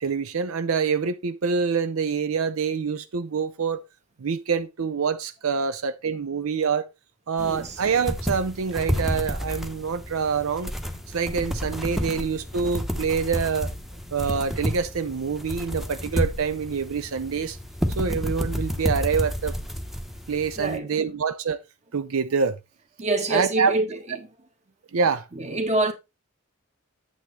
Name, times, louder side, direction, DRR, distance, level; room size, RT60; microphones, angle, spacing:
voice 1, 0.0-3.8 4.2-6.9 7.3-10.7 11.1-13.7 14.1-17.6 18.0-19.5 20.3-21.6 21.9-22.6 23.3-23.7 24.9-25.3, right 5 dB, 80° right, 0.6 m, -26 dB
sound 1, 7.4-20.8, equal, ahead, 0.8 m, -30 dB
voice 2, 23.0-24.3 25.3-25.9, right 2 dB, 35° right, 1.5 m, -26 dB
8.6 x 7.9 x 3.3 m
head